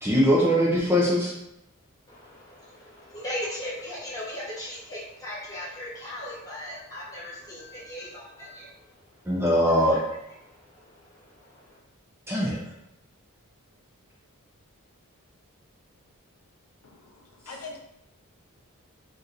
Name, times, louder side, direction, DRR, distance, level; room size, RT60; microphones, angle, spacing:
voice 1, 0.0-1.3 9.3-10.0 12.3-12.6, equal, 10° right, -5 dB, 0.5 m, -21 dB
voice 2, 2.1-8.7 9.9-10.0 10.4-11.8, left 1 dB, 15° left, -8 dB, 1.3 m, -38 dB
voice 3, 16.8-17.8, left 3 dB, 75° left, 1 dB, 0.5 m, -43 dB
2.6 x 2.5 x 4.1 m, 0.86 s
head